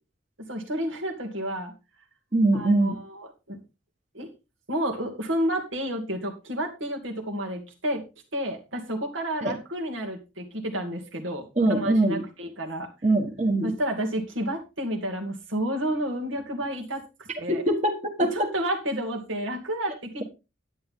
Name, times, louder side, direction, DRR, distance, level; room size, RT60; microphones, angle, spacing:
voice 1, 0.5-1.7 2.5-3.6 4.1-4.3 4.7-8.0 8.3-12.9 13.6-17.6 18.3-20.2, right 1 dB, 75° right, 2 dB, 2.6 m, -31 dB
voice 2, 2.3-3.0 9.4-9.5 11.6-12.2 13.0-13.7 17.5-18.5, right 2 dB, 35° right, 2 dB, 1.6 m, -22 dB
11.0 x 9.4 x 3.8 m, 0.28 s
head